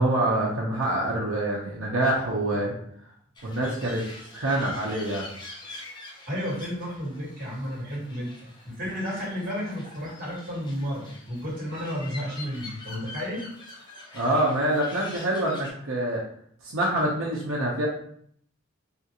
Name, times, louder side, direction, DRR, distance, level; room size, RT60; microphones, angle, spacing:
voice 1, 0.0-2.7 3.4-4.0 4.3-5.3 14.1-16.2 16.6-17.9, right 1 dB, 80° right, -4 dB, 0.6 m, -25 dB
sound 1, 3.4-15.7, left 2 dB, 20° left, 0.7 m, -45 dB
voice 2, 6.3-8.3 8.6-13.5, equal, 45° right, -4 dB, 1.4 m, -32 dB
3.5 x 2.4 x 2.8 m, 0.65 s
head